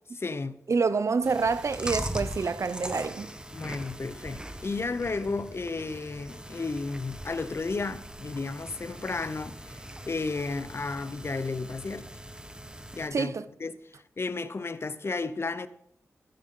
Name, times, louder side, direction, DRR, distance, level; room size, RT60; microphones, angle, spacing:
voice 1, 0.1-0.6 3.5-12.1 13.0-13.3 13.6-13.8 14.2-15.7, left 3 dB, 45° left, 0.8 m, -33 dB
voice 2, 0.7-3.3 13.1-13.4, right 4 dB, 60° right, 0.6 m, -27 dB
Chewing mastication, 1.2-13.1, right 1 dB, 15° right, 1.3 m, -40 dB
13.0 x 10.5 x 3.8 m
cardioid pair, 55°, 6 cm